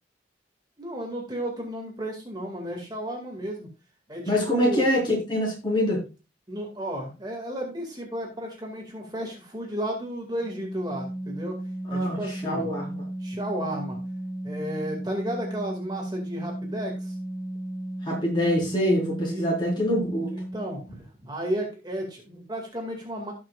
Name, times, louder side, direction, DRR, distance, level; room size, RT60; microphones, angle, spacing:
voice 1, 0.8-3.7 4.1-4.9 6.5-11.6 11.9-12.7 13.2-14.0 14.4-17.2 19.3-19.7 20.3-23.3, equal, 25° right, 0 dB, 2.2 m, -33 dB
voice 2, 4.3-6.0 11.8-12.9 18.0-20.3, equal, 25° left, -3 dB, 4.6 m, -25 dB
Organ, 10.4-21.0, right 1 dB, ahead, 3.1 m, -35 dB
17.5 x 6.1 x 2.4 m, 0.29 s
head